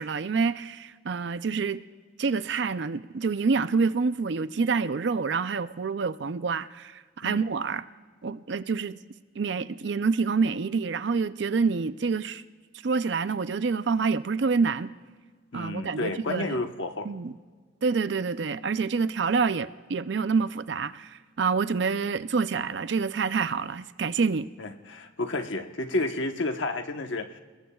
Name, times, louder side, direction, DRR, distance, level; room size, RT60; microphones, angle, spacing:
voice 1, 0.0-1.8 2.2-7.8 8.2-9.0 9.4-12.4 12.8-14.9 15.5-16.6 17.0-17.3 17.8-24.5, right 4 dB, 60° right, 0.5 m, -27 dB
voice 2, 15.5-17.1 24.6-27.4, left 2 dB, 70° left, 1.1 m, -31 dB
29.5 x 20.0 x 2.4 m
head